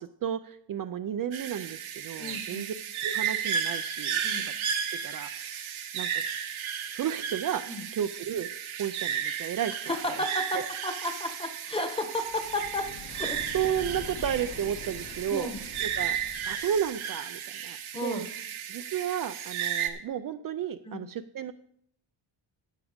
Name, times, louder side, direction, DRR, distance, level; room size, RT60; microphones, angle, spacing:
voice 1, 0.0-2.7 3.0-4.2 5.0-6.2 6.9-7.6 7.9-8.5 8.8-9.8 10.2-10.3 10.5-10.7 13.5-15.5 15.8-16.2 16.5-18.2 18.7-21.5, right 9 dB, 45° right, 9 dB, 0.5 m, -33 dB
sound 1, 1.3-19.9, right 8 dB, 85° right, 1.4 m, -34 dB
voice 2, 2.2-2.7 4.2-4.5 7.7-7.8 9.9-13.4 15.3-15.6 17.9-18.3 20.8-21.0, left 1 dB, 10° left, 7 dB, 1.2 m, -33 dB
sound 2, 12.2-17.0, left 4 dB, 55° left, 1.5 m, -44 dB
12.0 x 8.3 x 5.1 m, 0.68 s
cardioid pair, 150°, 47 cm